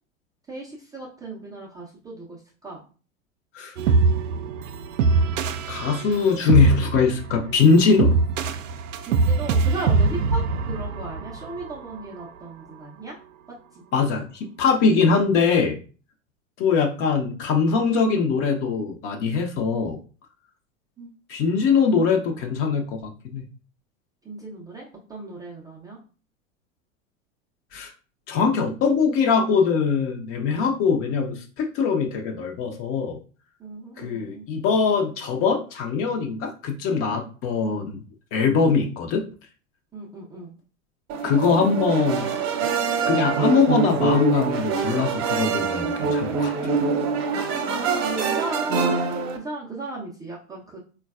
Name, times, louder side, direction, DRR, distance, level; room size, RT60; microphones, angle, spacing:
voice 1, 0.5-2.8 9.0-13.1 13.7-13.8 21.0-21.1 24.2-26.0 33.6-34.5 39.9-40.5 47.6-50.8, right 3 dB, 10° right, -5 dB, 0.4 m, -36 dB
sound 1, 3.8-11.9, right 4 dB, 70° right, 0.5 m, -23 dB
voice 2, 5.7-8.2 13.9-15.8 16.6-20.0 21.3-23.4 27.7-27.9 28.3-33.2 34.0-38.0 38.3-39.2 41.2-42.3 43.0-46.5, left 5 dB, 35° left, 4 dB, 0.6 m, -22 dB
sound 2, 41.1-49.4, right 5 dB, 50° right, 0.8 m, -24 dB
3.8 x 2.2 x 2.3 m, 0.37 s
figure-of-eight pair, 90°, 40 cm